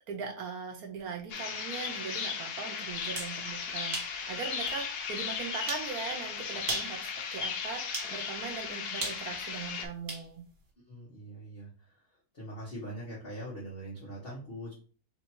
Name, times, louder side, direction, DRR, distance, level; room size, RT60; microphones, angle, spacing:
voice 1, 0.1-10.4, right 5 dB, 70° right, 3 dB, 1.1 m, -40 dB
sound 1, 1.3-9.9, left 6 dB, 80° left, 1.3 m, -36 dB
sound 2, 2.9-3.4 3.9-4.2 4.7-4.8 5.7-5.9 6.6-7.0 7.9-8.1 9.0-10.3, right 2 dB, 55° right, 1.8 m, -36 dB
voice 2, 10.9-11.9 12.3-14.7, right 1 dB, 40° left, -7 dB, 1.5 m, -42 dB
3.5 x 2.7 x 4.4 m, 0.39 s
omnidirectional pair, 1.7 m